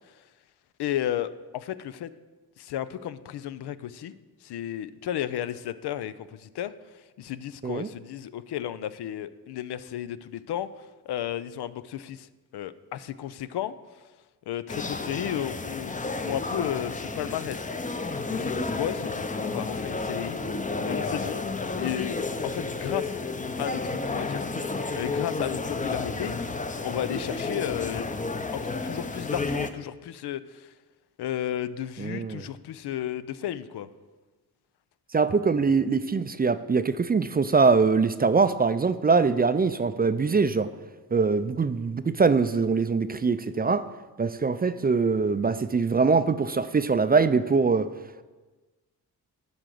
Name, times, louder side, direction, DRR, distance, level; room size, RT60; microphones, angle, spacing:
voice 1, 0.8-2.1 2.6-4.1 4.4-12.3 12.5-13.7 14.5-15.9 16.2-17.6 18.2-20.4 20.8-21.4 21.7-22.2 22.4-23.2 23.6-24.5 24.9-26.4 26.8-28.1 28.5-30.7 31.2-33.9, left 11 dB, 80° left, 14 dB, 0.5 m, -33 dB
sound 1, 14.7-29.7, left 3 dB, 20° left, 0.6 m, -31 dB
voice 2, 32.0-32.4 35.1-40.7 41.1-43.9 44.2-47.9, right 4 dB, 25° right, 13 dB, 0.4 m, -23 dB
11.0 x 3.9 x 7.6 m, 1.3 s
cardioid pair, 65°, 39 cm